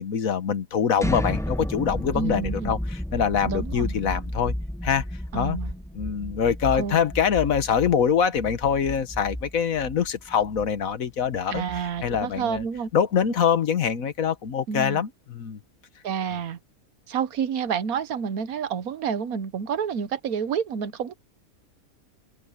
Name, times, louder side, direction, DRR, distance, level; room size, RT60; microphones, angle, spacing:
voice 1, 0.0-4.5 4.8-5.0 5.3-5.6 5.9-11.6 12.0-12.6 12.9-15.6, left 7 dB, 75° left, 1.6 m, -24 dB
sound 1, 1.0-12.8, equal, 5° left, 0.4 m, -33 dB
voice 2, 2.1-2.8 3.4-3.9 5.3-5.7 6.7-7.0 11.5-12.9 14.7-15.0 16.0-16.6 17.1-21.1, right 7 dB, 85° right, 1.5 m, -29 dB
omnidirectional pair, 1.5 m